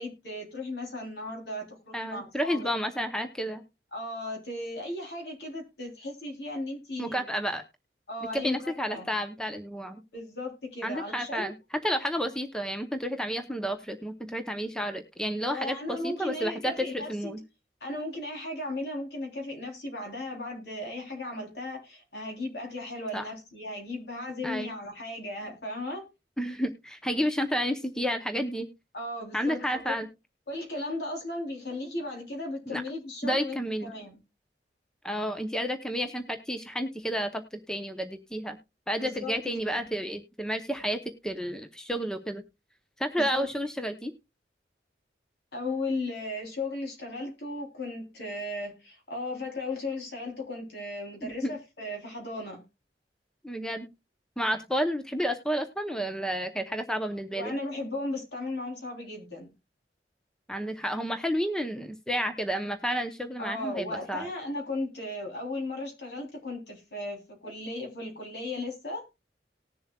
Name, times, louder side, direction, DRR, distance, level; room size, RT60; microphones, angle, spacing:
voice 1, 0.0-2.7 3.9-7.2 8.1-9.1 10.1-11.5 15.5-17.4 17.8-26.1 28.9-29.9 30.5-33.6 33.8-34.2 39.0-39.4 39.7-39.9 43.2-43.5 45.5-52.6 57.3-59.5 63.4-69.0, left 2 dB, 70° left, 3.5 m, -36 dB
voice 2, 1.9-3.6 7.0-7.6 8.3-10.0 10.8-11.5 11.8-17.4 23.1-23.3 24.4-24.7 26.4-28.7 29.3-30.1 32.7-32.8 33.2-33.9 35.0-38.6 38.9-42.4 43.0-44.1 51.2-51.5 53.4-53.9 54.4-57.5 60.5-64.3, equal, 5° left, 0.8 m, -31 dB
19.0 x 7.0 x 2.3 m
head